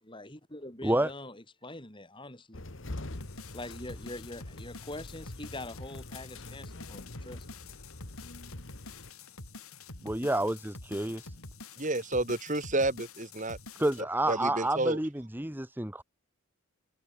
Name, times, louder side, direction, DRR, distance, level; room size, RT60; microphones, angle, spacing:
voice 1, 0.0-2.7 3.5-7.5, left 1 dB, 20° left, 3.7 m, -44 dB
sound 1, 2.5-9.1, left 2 dB, 55° left, 1.6 m, -45 dB
sound 2, 3.0-14.0, left 3 dB, 80° left, 4.9 m, -47 dB
voice 2, 10.0-11.4 13.8-16.0, right 1 dB, 10° right, 1.0 m, -29 dB
voice 3, 11.8-13.6 14.3-15.0, right 2 dB, 35° right, 2.6 m, -30 dB
head